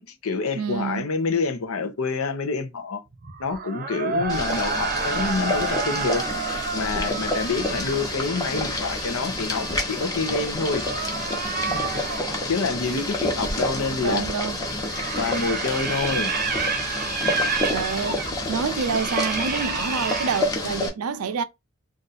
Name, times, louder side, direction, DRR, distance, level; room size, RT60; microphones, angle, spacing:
voice 1, 0.0-3.0 3.4-6.3 6.7-10.8 11.7-12.0 12.5-14.3 15.1-16.3, left 4 dB, 75° left, 0.7 m, -27 dB
voice 2, 0.6-1.1 13.9-14.6 17.7-21.4, right 6 dB, 85° right, 0.5 m, -28 dB
sound 1, 3.1-12.4 14.5-20.4, right 5 dB, 45° right, 0.7 m, -30 dB
Boiling, 4.3-20.9, left 1 dB, 15° left, 0.9 m, -29 dB
2.6 x 2.4 x 4.1 m
head